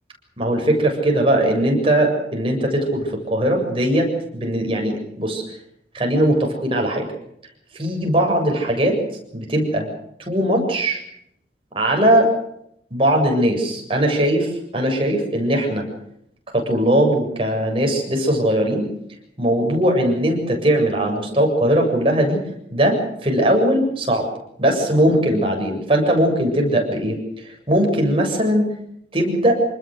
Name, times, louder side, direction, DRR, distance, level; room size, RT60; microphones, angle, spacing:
voice 1, 0.4-5.4 5.9-7.1 7.8-9.0 9.3-9.9 10.3-11.0 11.7-12.3 12.9-15.8 16.5-18.8 19.4-22.4 22.7-24.3 24.6-28.7 29.1-29.7, right 1 dB, 30° right, 1 dB, 7.6 m, -19 dB
28.0 x 20.0 x 6.7 m, 0.73 s
head